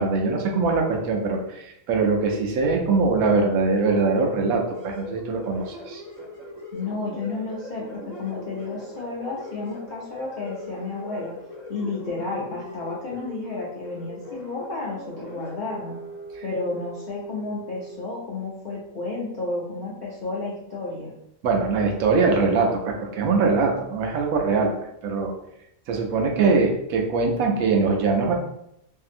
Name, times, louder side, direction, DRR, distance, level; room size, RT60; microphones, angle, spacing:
voice 1, 0.0-6.0 16.4-16.5 21.4-24.7 25.0-25.3 25.9-28.3, right 4 dB, 85° right, 2 dB, 1.0 m, -22 dB
sound 1, 4.2-18.0, left 1 dB, 25° right, 0.7 m, -40 dB
voice 2, 6.7-11.3 11.7-16.0 16.4-21.1, left 3 dB, 60° left, -5 dB, 0.5 m, -32 dB
2.7 x 2.6 x 2.5 m, 0.77 s
omnidirectional pair, 1.4 m